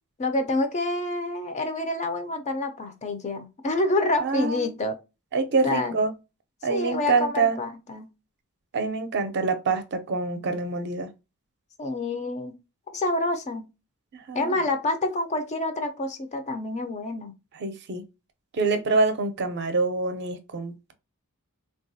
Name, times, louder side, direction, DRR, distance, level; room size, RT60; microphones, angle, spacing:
voice 1, 0.2-5.0 5.6-5.9 6.7-8.1 11.8-12.6 12.9-13.7 14.3-17.3, left 2 dB, 30° left, 0.4 m, -27 dB
voice 2, 4.2-4.6 5.3-6.1 6.6-7.6 8.7-11.1 14.1-14.5 17.5-18.0 18.5-20.9, right 4 dB, 50° right, 0.5 m, -26 dB
3.3 x 2.3 x 2.6 m
head